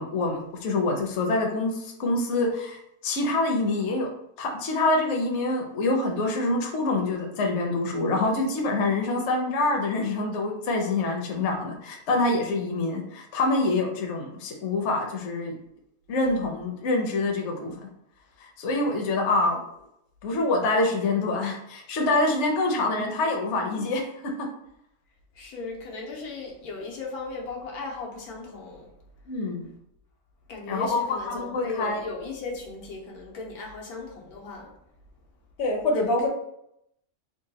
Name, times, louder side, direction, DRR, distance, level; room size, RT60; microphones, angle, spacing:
voice 1, 0.0-2.8 3.0-4.1 4.4-15.5 16.1-17.7 18.4-19.6 20.2-24.0 24.4-24.5 29.3-29.7 30.7-32.0 35.6-36.3, left 2 dB, 60° left, 1 dB, 0.9 m, -26 dB
voice 2, 25.3-28.9 30.5-34.7 36.0-36.3, left 3 dB, 90° left, -1 dB, 1.4 m, -36 dB
3.7 x 2.2 x 4.0 m, 0.78 s
omnidirectional pair, 1.6 m